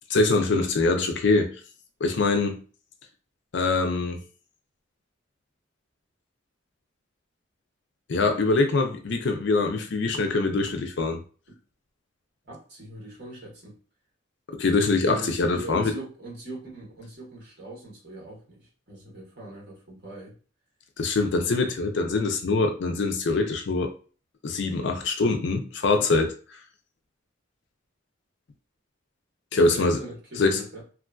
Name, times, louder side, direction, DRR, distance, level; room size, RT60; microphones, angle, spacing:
voice 1, 0.1-1.5 2.0-2.6 3.5-4.2 8.1-11.2 14.5-15.9 21.0-23.9 24.4-26.3 29.5-30.0 30.4-30.6, left 3 dB, 65° left, 0.5 m, -23 dB
voice 2, 12.5-13.8 15.0-20.3 29.7-30.8, right 2 dB, 55° right, 1.3 m, -41 dB
3.0 x 2.4 x 2.3 m
head